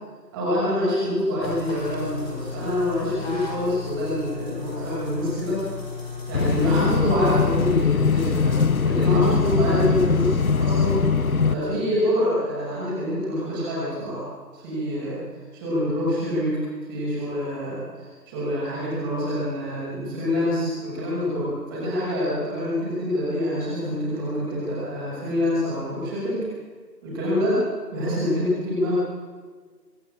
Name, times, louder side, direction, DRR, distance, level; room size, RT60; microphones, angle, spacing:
voice 1, 0.3-5.6 6.3-14.2 14.5-15.2 15.5-26.5 27.0-27.6 27.9-28.9, left 1 dB, 15° right, -8 dB, 6.2 m, -26 dB
sound 1, 1.4-6.8, left 5 dB, 35° left, 5.2 m, -35 dB
sound 2, 6.3-11.5, left 5 dB, 55° left, 1.1 m, -21 dB
25.0 x 12.5 x 8.8 m, 1.5 s
figure-of-eight pair, 155°, 50 cm